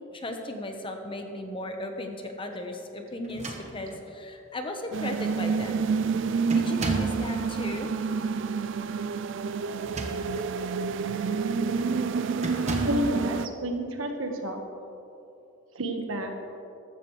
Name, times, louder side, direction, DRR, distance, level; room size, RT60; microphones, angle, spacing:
voice 1, 0.1-5.8 6.5-7.9, left 1 dB, 25° left, 4 dB, 1.1 m, -36 dB
sound 1, 3.2-4.1 5.0-5.1 5.5-5.8 6.5-7.2 9.7-10.5 11.1-11.3 12.4-13.1, right 2 dB, 35° right, 1.2 m, -35 dB
sound 2, 4.9-13.5, right 5 dB, 65° right, 0.4 m, -28 dB
voice 2, 12.6-14.6 15.7-16.4, right 1 dB, 80° right, 3 dB, 1.4 m, -30 dB
14.5 x 12.5 x 3.2 m, 2.8 s
head